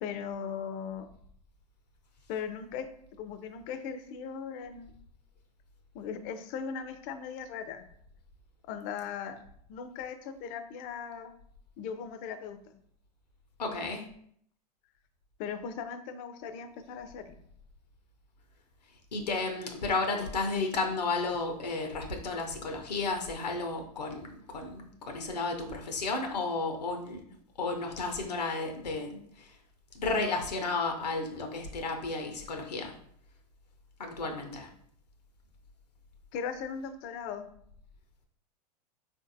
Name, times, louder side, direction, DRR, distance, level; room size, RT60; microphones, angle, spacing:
voice 1, 0.0-1.1 2.3-2.9 3.2-4.9 5.9-7.8 8.7-9.4 9.7-11.3 11.8-12.7 15.4-17.3 36.3-37.5, left 7 dB, 40° left, 9 dB, 0.4 m, -38 dB
voice 2, 13.6-14.1 19.1-27.2 27.6-29.6 29.9-33.0 34.0-34.7, left 3 dB, 85° left, 3 dB, 0.6 m, -33 dB
3.8 x 2.6 x 2.5 m, 0.64 s
hypercardioid pair, 100°, 20 cm